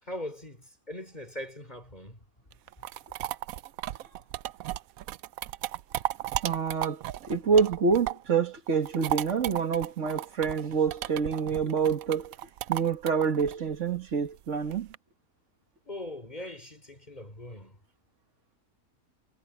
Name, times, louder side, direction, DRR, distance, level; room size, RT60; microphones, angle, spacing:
voice 1, 0.0-2.2 3.9-4.0 15.9-17.8, left 1 dB, 25° left, 3.9 m, -41 dB
sound 1, 2.5-8.3 8.7-14.9, right 13 dB, 70° right, 0.9 m, -35 dB
voice 2, 6.4-12.3 12.7-14.9, right 5 dB, 45° right, 2.0 m, -27 dB
omnidirectional pair, 1.7 m